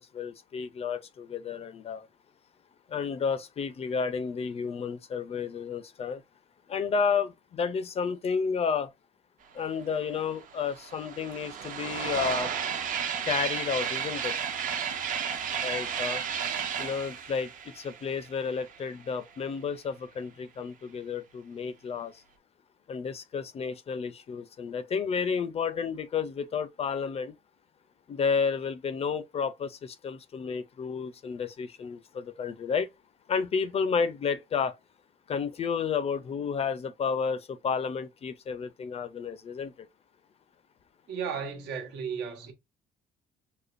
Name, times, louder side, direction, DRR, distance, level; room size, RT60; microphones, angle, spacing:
voice 1, 0.0-2.1 2.9-6.2 6.7-8.9 9.5-12.5 13.2-14.4 15.6-16.2 16.8-22.1 22.9-27.3 28.1-32.9 33.3-34.8 35.3-39.7, left 6 dB, 35° left, 0.5 m, -31 dB
sound 1, 10.0-10.1 10.3-18.9, right 7 dB, 50° right, 0.7 m, -33 dB
voice 2, 41.1-42.5, right 6 dB, 80° right, 1.1 m, -34 dB
5.0 x 2.1 x 2.5 m
cardioid pair, 110°, 17 cm